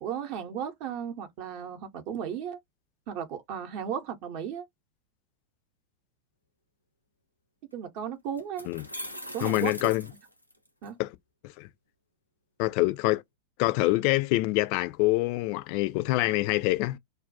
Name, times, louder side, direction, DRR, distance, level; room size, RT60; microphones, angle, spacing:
voice 1, 0.0-2.6 3.1-4.7 7.7-8.7 9.3-9.9 10.8-11.0, right 8 dB, 45° right, 0.6 m, -35 dB
sound 1, 7.7-7.8 8.4-10.9, equal, 90° left, 0.6 m, -41 dB
voice 2, 9.4-10.0 11.0-11.1 11.6-11.7 12.6-13.2 13.6-17.0, left 19 dB, 45° left, 0.3 m, -25 dB
2.2 x 2.2 x 2.6 m
figure-of-eight pair, 90°, 0 cm